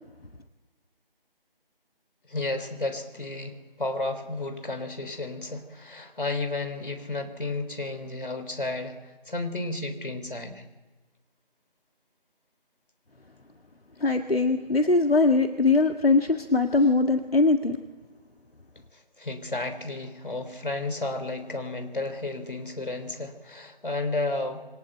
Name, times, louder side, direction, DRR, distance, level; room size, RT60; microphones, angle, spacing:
voice 1, 2.3-9.0 9.3-10.6 18.9-24.6, left 2 dB, 60° left, 8 dB, 3.7 m, -32 dB
voice 2, 14.0-17.8, left 3 dB, 80° left, 5 dB, 1.8 m, -21 dB
27.0 x 23.0 x 9.1 m, 1.2 s
figure-of-eight pair, 160°, 30 cm